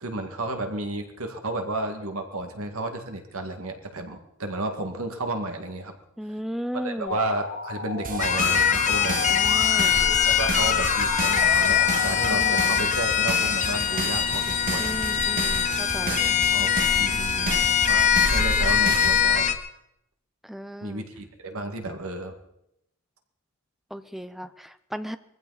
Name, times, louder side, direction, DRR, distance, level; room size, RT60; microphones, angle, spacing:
voice 1, 0.0-6.0 6.8-9.2 9.9-15.0 16.0-16.7 17.0-19.5 20.8-22.4, right 2 dB, 70° right, 4 dB, 2.0 m, -32 dB
voice 2, 6.2-7.2 9.3-10.0 12.3-12.7 14.8-16.2 20.4-21.0 23.9-25.2, equal, ahead, 11 dB, 0.6 m, -35 dB
Musical instrument, 7.1-12.6, left 5 dB, 55° left, 4.0 m, -31 dB
sound 1, 8.0-19.2, right 4 dB, 40° right, 1.1 m, -33 dB
sound 2, 8.2-19.5, left 8 dB, 35° left, 1.0 m, -22 dB
22.0 x 15.0 x 4.1 m, 0.80 s
head